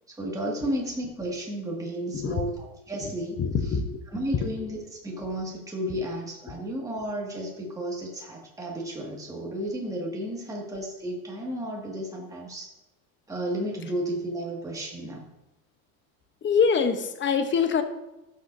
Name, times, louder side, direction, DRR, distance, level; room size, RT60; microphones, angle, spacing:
voice 1, 0.1-3.4 4.1-12.7 13.3-15.2, right 1 dB, 10° right, -3 dB, 1.8 m, -33 dB
voice 2, 2.1-2.5 3.4-4.0 4.4-4.5 5.9-6.0 6.5-6.6 16.4-17.8, left 6 dB, 30° left, 9 dB, 0.8 m, -25 dB
11.5 x 6.5 x 2.6 m, 0.99 s
supercardioid pair, 110°, 39 cm